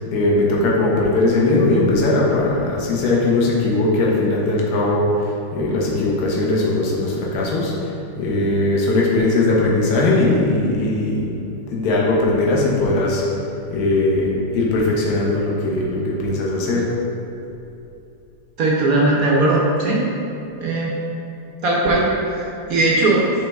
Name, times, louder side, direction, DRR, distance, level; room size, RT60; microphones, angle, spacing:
voice 1, 0.1-5.3 5.5-7.7 8.2-11.3 11.7-13.2 13.7-16.8, left 2 dB, 50° left, -4 dB, 1.5 m, -19 dB
voice 2, 18.6-20.1 20.6-20.9 21.6-23.3, right 2 dB, 60° right, -3 dB, 0.9 m, -18 dB
10.5 x 3.9 x 3.5 m, 2.8 s
omnidirectional pair, 2.4 m